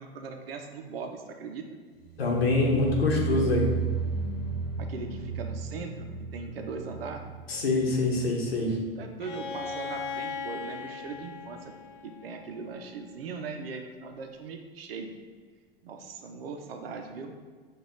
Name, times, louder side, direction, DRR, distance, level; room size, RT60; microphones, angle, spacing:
voice 1, 0.0-1.6 4.8-7.2 9.0-11.7 12.0-15.1 15.8-17.3, right 5 dB, 75° right, 4 dB, 0.5 m, -39 dB
sound 1, 2.0-9.1 9.4-9.8 10.2-10.3, right 5 dB, 40° left, 1.1 m, -34 dB
voice 2, 2.2-3.6 7.5-8.8, left 3 dB, 85° left, -1 dB, 0.9 m, -25 dB
Bowed string instrument, 9.2-13.0, left 5 dB, 60° left, 0.5 m, -38 dB
4.8 x 2.3 x 3.8 m, 1.5 s
hypercardioid pair, 90°, 30 cm